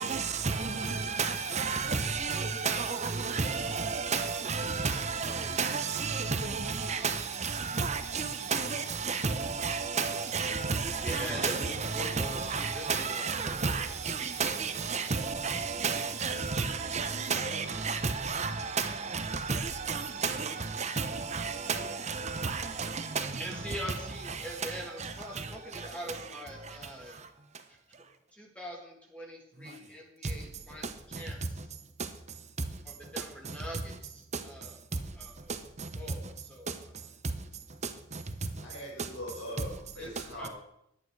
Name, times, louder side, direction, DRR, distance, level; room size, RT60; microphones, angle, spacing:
voice 1, 0.0-23.5, right 5 dB, 35° right, 0.9 m, -32 dB
voice 2, 11.0-13.9 23.4-27.2 28.3-30.9 31.2-31.6 32.9-34.8 35.2-35.5 36.0-36.7 40.0-40.5, equal, 5° left, 2.0 m, -43 dB
voice 3, 21.5-21.9 38.6-40.5, equal, 75° left, 5.0 m, -42 dB
11.0 x 9.0 x 4.8 m
head